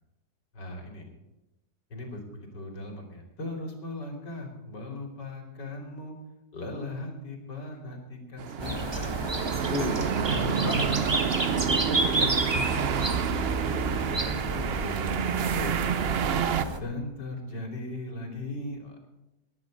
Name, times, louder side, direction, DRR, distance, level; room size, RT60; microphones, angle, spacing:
voice 1, 0.5-1.1 1.9-6.1 6.5-10.8 11.8-16.1 16.7-19.1, left 2 dB, 80° left, 2 dB, 3.7 m, -39 dB
sound 1, 8.4-16.6, right 8 dB, 65° right, 0.6 m, -29 dB
sound 2, 8.6-16.8, right 2 dB, 20° right, 1.1 m, -31 dB
voice 2, 9.7-11.9, left 4 dB, 40° left, 9 dB, 0.9 m, -36 dB
19.0 x 11.0 x 5.3 m, 0.96 s
omnidirectional pair, 1.8 m